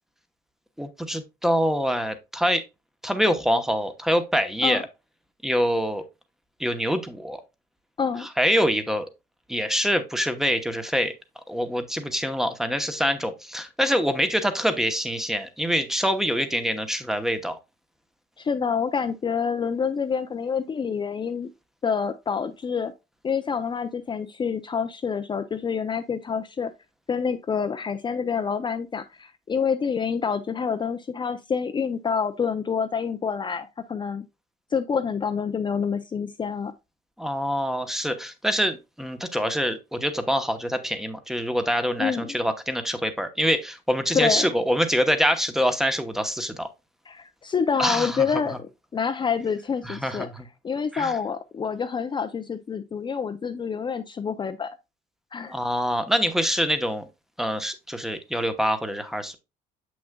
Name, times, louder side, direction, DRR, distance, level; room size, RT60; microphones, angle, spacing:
voice 1, 0.8-2.6 3.0-4.8 5.4-6.0 6.6-7.4 8.2-9.1 9.5-11.1 11.5-17.6 37.2-46.7 47.8-48.4 49.8-50.5 50.9-51.1 55.5-57.0 57.4-59.3, equal, ahead, 0.9 m, -25 dB
voice 2, 18.4-21.5 21.8-22.9 23.2-26.7 27.1-34.2 34.7-36.7 42.0-42.4 44.1-44.5 47.1-48.5 48.9-50.3 50.6-54.7 55.3-55.5, left 6 dB, 25° left, 0.5 m, -27 dB
7.1 x 6.2 x 2.2 m
cardioid pair, 110°, 17 cm